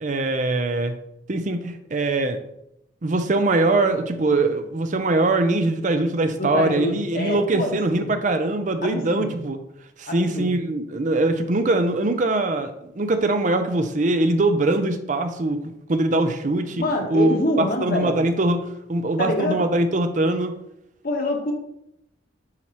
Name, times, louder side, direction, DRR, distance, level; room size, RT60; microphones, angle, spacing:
voice 1, 0.0-0.9 1.3-2.4 3.0-9.6 10.0-16.8 17.1-20.6, right 2 dB, 40° right, 8 dB, 0.6 m, -22 dB
voice 2, 6.4-8.1 8.8-9.3 10.1-10.5 16.8-18.2 19.2-19.7 21.0-21.5, left 1 dB, 50° left, 2 dB, 1.2 m, -26 dB
9.6 x 4.6 x 3.0 m, 0.81 s
head